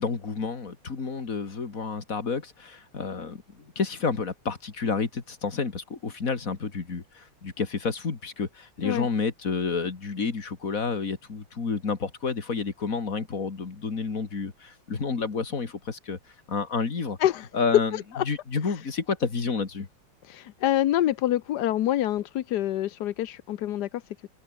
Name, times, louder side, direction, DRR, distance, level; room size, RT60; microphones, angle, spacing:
voice 1, 0.0-16.2 16.5-17.2 17.5-18.0 18.3-19.9, left 5 dB, 40° left, 2.7 m, -30 dB
voice 2, 17.9-18.2 18.6-18.7 20.3-24.0, left 12 dB, 65° left, 1.1 m, -26 dB
omnidirectional pair, 2.4 m